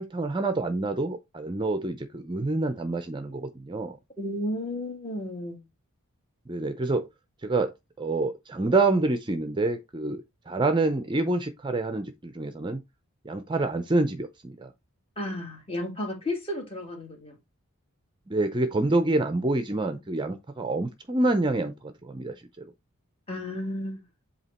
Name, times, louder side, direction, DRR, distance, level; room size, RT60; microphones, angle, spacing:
voice 1, 0.0-4.0 6.5-7.1 7.4-10.2 10.5-12.8 13.2-14.7 18.3-22.7, right 2 dB, 20° right, 0.5 m, -27 dB
voice 2, 4.2-5.6 15.2-17.4 23.3-24.0, left 1 dB, 25° left, 1.6 m, -33 dB
8.0 x 2.9 x 4.2 m
head